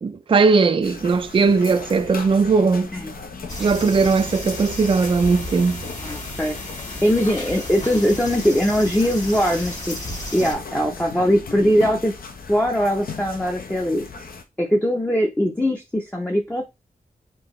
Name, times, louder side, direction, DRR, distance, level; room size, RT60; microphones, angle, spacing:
voice 1, 0.0-2.9 3.6-5.8, right 4 dB, 35° right, 0.4 m, -18 dB
sound 1, 0.8-14.4, left 4 dB, 70° left, 0.8 m, -38 dB
sound 2, 3.5-10.5, left 1 dB, 50° left, 2.1 m, -33 dB
voice 2, 6.0-6.7 7.0-10.0 10.3-12.1 12.5-14.0 14.6-16.6, equal, 10° left, 0.6 m, -21 dB
4.6 x 3.2 x 3.1 m
wide cardioid pair, 135°, 15 cm